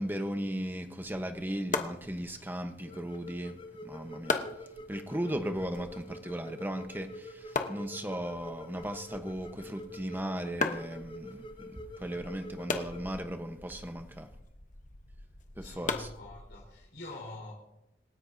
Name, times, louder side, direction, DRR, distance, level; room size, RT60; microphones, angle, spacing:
voice 1, 0.0-4.4 4.9-14.3 15.6-16.1, equal, 10° right, 1.0 m, -37 dB
sound 1, 1.0-16.9, left 3 dB, 45° left, 1.0 m, -40 dB
sound 2, 2.8-13.1, left 1 dB, 25° left, 0.5 m, -47 dB
voice 2, 15.6-17.5, left 2 dB, 75° left, 4.2 m, -45 dB
27.0 x 11.0 x 2.8 m
head